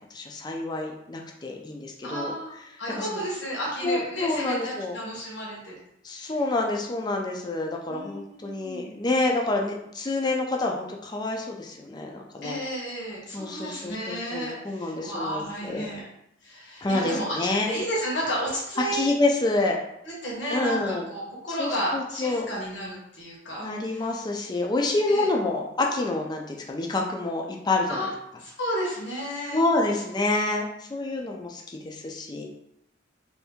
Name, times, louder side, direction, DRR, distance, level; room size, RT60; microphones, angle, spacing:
voice 1, 0.1-2.3 3.0-3.2 3.8-5.0 6.0-12.6 13.3-15.9 16.8-17.7 18.9-19.8 20.5-21.1 21.6-22.5 23.6-28.1 29.5-32.4, left 2 dB, 20° left, 1 dB, 0.4 m, -28 dB
voice 2, 2.0-5.7 6.1-6.4 7.9-9.0 12.4-16.0 16.4-17.4 17.7-19.1 20.0-24.1 25.1-25.3 27.9-28.1 28.4-29.6, equal, 65° left, -5 dB, 1.1 m, -32 dB
2.8 x 2.6 x 3.4 m, 0.79 s
head